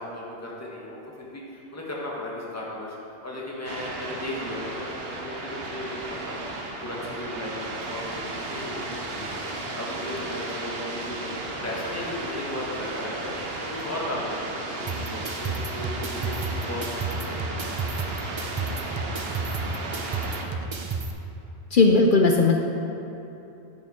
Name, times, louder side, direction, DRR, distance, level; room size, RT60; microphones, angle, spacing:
voice 1, 0.0-3.0 3.2-17.7, left 1 dB, 15° left, -4 dB, 1.4 m, -36 dB
sound 1, 3.6-20.4, right 2 dB, 60° right, 1.1 m, -34 dB
sound 2, 14.9-21.1, right 4 dB, 40° right, 0.4 m, -32 dB
voice 2, 21.7-22.6, left 3 dB, 55° left, 2 dB, 0.7 m, -17 dB
9.1 x 7.6 x 4.3 m, 2.9 s
omnidirectional pair, 1.2 m